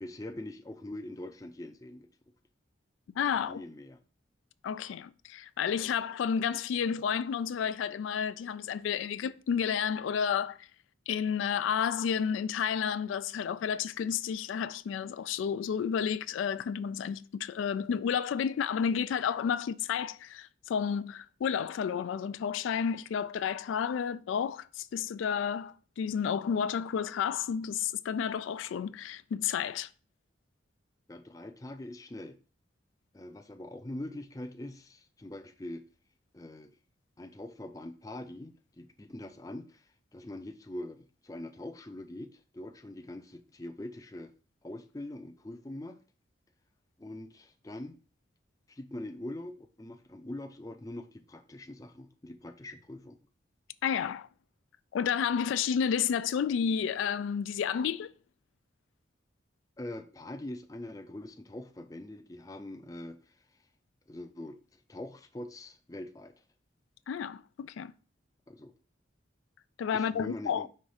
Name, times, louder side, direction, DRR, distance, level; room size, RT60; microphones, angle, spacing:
voice 1, 0.0-2.1 3.5-4.0 31.1-32.4 33.1-35.8 36.3-36.7 37.2-44.3 44.6-46.0 47.0-48.0 48.7-53.2 59.8-63.3 64.1-66.3 68.5-68.7 69.9-70.7, left 1 dB, 20° left, 0.5 m, -43 dB
voice 2, 3.2-3.6 4.6-10.7 11.1-29.9 53.8-54.3 54.9-58.1 67.1-67.9 69.8-70.7, left 7 dB, 90° left, 0.3 m, -31 dB
5.6 x 3.5 x 4.9 m
head